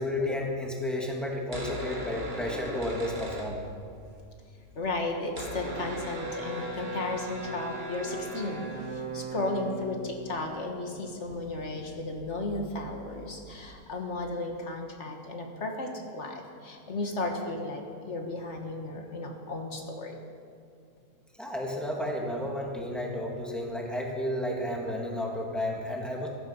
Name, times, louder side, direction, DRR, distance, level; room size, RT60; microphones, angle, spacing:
voice 1, 0.0-3.6 21.4-26.3, left 1 dB, ahead, -1 dB, 2.0 m, -32 dB
sound 1, 1.5-4.1 4.4-4.5 4.6-14.1, right 1 dB, 30° right, 1.8 m, -39 dB
voice 2, 4.8-8.6 8.9-20.2, left 2 dB, 50° left, 2 dB, 1.8 m, -34 dB
15.0 x 13.5 x 5.5 m, 2.3 s
omnidirectional pair, 1.7 m